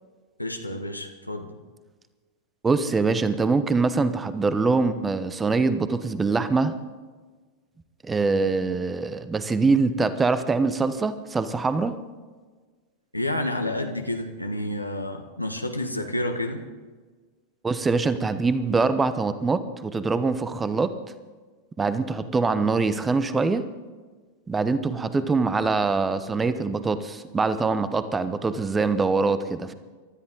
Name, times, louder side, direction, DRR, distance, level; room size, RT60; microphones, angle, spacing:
voice 1, 0.4-1.5 13.1-16.6, left 1 dB, 85° left, 4 dB, 1.4 m, -29 dB
voice 2, 2.6-6.8 8.0-12.0 17.6-20.9 21.8-23.6 24.5-29.7, right 4 dB, 15° right, 12 dB, 1.0 m, -24 dB
24.5 x 13.0 x 4.0 m, 1.4 s
figure-of-eight pair, 90°, 0 cm